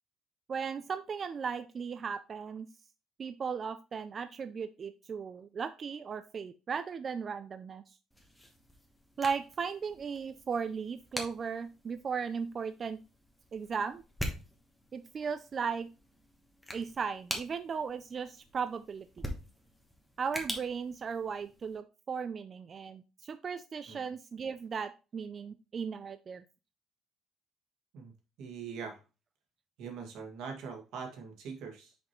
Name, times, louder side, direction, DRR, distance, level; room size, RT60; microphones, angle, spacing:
voice 1, 0.5-2.7 3.2-7.8 9.2-13.0 13.5-14.0 14.9-15.9 16.7-19.3 20.2-26.4, right 6 dB, 30° right, 10 dB, 0.3 m, -36 dB
sound 1, 8.1-21.8, equal, 5° left, 1.1 m, -45 dB
voice 2, 28.4-29.0 29.8-32.0, right 6 dB, 80° right, 2 dB, 1.9 m, -42 dB
6.0 x 5.3 x 3.0 m, 0.31 s
cardioid pair, 165°, 0 cm